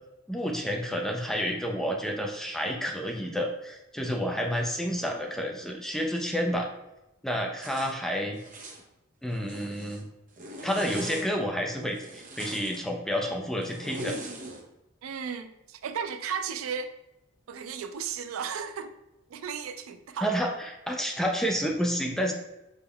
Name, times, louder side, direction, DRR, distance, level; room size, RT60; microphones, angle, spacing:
voice 1, 0.3-6.7 7.2-8.4 9.2-10.1 10.6-14.2 20.2-22.3, equal, ahead, 0.4 m, -30 dB
Zipper (clothing), 7.6-7.9 8.4-8.8 9.3-10.0 10.4-11.3 11.9-12.8 13.6-14.6, right 1 dB, 40° right, 0.7 m, -40 dB
voice 2, 15.0-16.9 17.5-18.9 19.3-20.3, right 6 dB, 90° right, 0.4 m, -35 dB
5.2 x 3.5 x 2.2 m
head